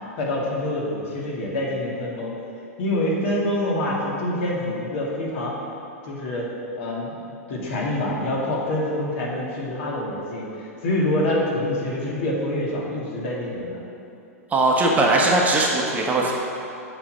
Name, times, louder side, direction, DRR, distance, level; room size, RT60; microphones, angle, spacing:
voice 1, 0.2-2.3 2.8-5.6 6.0-6.5 6.8-7.2 7.5-13.8, left 1 dB, 55° left, -3 dB, 2.0 m, -26 dB
voice 2, 14.5-16.3, right 2 dB, 20° right, -1 dB, 1.1 m, -19 dB
7.6 x 4.6 x 6.2 m, 2.7 s
hypercardioid pair, 105°, 8 cm